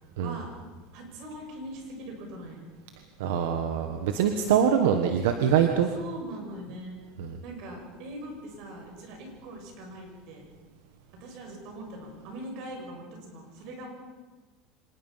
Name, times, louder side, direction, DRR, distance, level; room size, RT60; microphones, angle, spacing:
voice 1, 0.2-0.5 0.9-2.7 5.9-7.0 7.4-10.4 11.1-13.9, right 1 dB, 60° right, 2 dB, 6.9 m, -41 dB
voice 2, 3.2-5.9 7.2-7.4, right 8 dB, 90° right, 6 dB, 1.5 m, -24 dB
25.0 x 20.5 x 5.8 m, 1.3 s
supercardioid pair, 140°, 0 cm